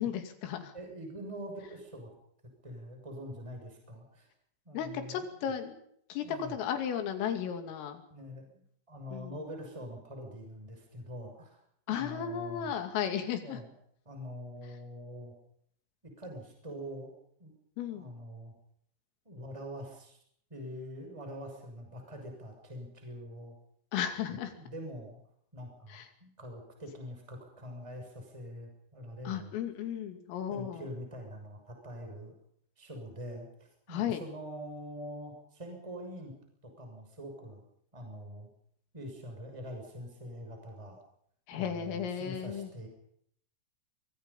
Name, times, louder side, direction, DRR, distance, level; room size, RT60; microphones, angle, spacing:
voice 1, 0.0-0.7 4.7-5.8 6.1-8.0 9.1-9.4 11.9-13.6 17.8-18.1 23.9-24.5 25.9-26.1 29.3-30.9 33.9-34.2 41.5-42.7, left 9 dB, 85° left, 6 dB, 5.3 m, -34 dB
voice 2, 0.7-2.1 2.6-4.3 4.6-5.3 6.2-6.6 8.1-8.5 8.9-11.6 11.9-12.7 13.4-13.7 14.0-15.3 16.0-17.1 17.4-17.5 17.9-18.5 19.2-20.2 20.5-23.6 24.6-25.2 25.5-29.5 30.5-32.3 32.8-36.3 36.6-37.6 37.9-38.5 38.9-41.0 41.5-42.9, equal, 5° right, 3 dB, 6.2 m, -44 dB
25.0 x 24.0 x 5.6 m, 0.68 s
omnidirectional pair, 5.8 m